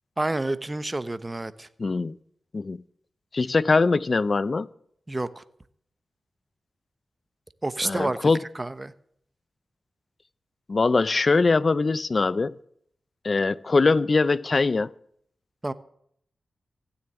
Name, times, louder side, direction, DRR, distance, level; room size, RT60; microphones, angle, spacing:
voice 1, 0.2-1.7 5.1-5.4 7.6-8.9 15.6-15.7, right 2 dB, 25° right, 1.1 m, -29 dB
voice 2, 1.8-2.1 2.5-2.8 3.3-4.7 7.8-8.4 10.7-12.5 13.2-14.9, left 3 dB, 50° left, 0.6 m, -22 dB
15.5 x 7.1 x 9.8 m
supercardioid pair, 40°, 0 cm